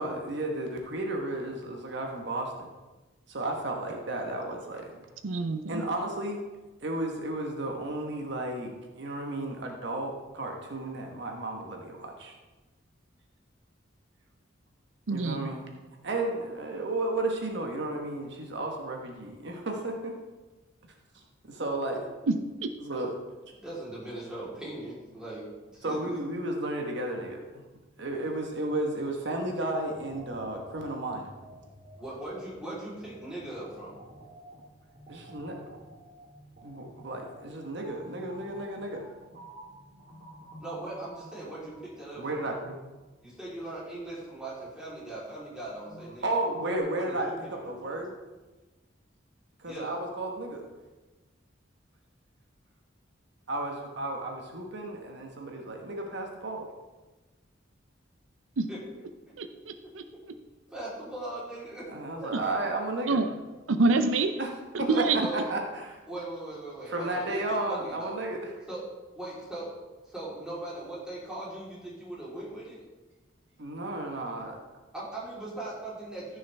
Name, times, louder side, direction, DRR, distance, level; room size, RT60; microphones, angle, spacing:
voice 1, 0.0-2.7 3.3-5.0 5.7-6.4 6.8-12.4 15.1-15.6 16.0-20.1 21.1-21.2 21.5-22.1 22.8-23.1 25.8-27.6 28.0-31.3 35.1-35.6 36.6-39.0 42.2-42.8 46.2-48.1 49.6-50.6 53.5-56.7 61.9-63.2 64.4-64.5 64.8-65.0 65.3-66.0 66.9-68.5 73.6-74.6, right 2 dB, 65° right, 2 dB, 1.2 m, -33 dB
voice 2, 5.2-5.8 15.1-15.5 22.3-22.7 58.6-58.7 59.4-60.0 62.3-62.4 63.1-63.3 63.7-64.3 64.7-65.3, right 3 dB, 80° right, 9 dB, 0.5 m, -27 dB
voice 3, 23.6-25.4 25.7-26.1 32.0-34.0 40.6-42.4 43.2-46.2 46.9-47.3 47.6-48.0 49.6-50.0 58.7-58.8 59.8-60.2 60.7-61.9 62.2-62.3 64.9-65.5 66.1-67.4 67.7-68.2 68.7-68.8 69.1-69.7 70.0-72.8 74.9-76.4, right 1 dB, 5° right, -8 dB, 3.5 m, -39 dB
sound 1, 29.3-43.0 45.7-46.8, right 1 dB, 45° right, 2.2 m, -51 dB
14.5 x 6.4 x 3.4 m, 1.2 s
head